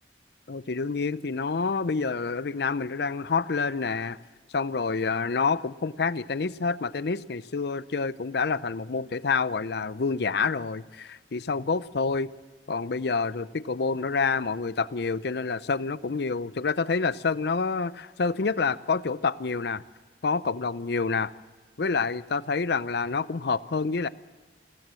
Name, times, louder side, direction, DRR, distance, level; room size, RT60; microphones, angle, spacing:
voice 1, 0.5-4.2 4.5-12.3 12.7-19.8 20.2-21.3 21.8-24.1, left 4 dB, 60° left, 16 dB, 0.6 m, -28 dB
22.5 x 15.5 x 7.6 m, 1.4 s
head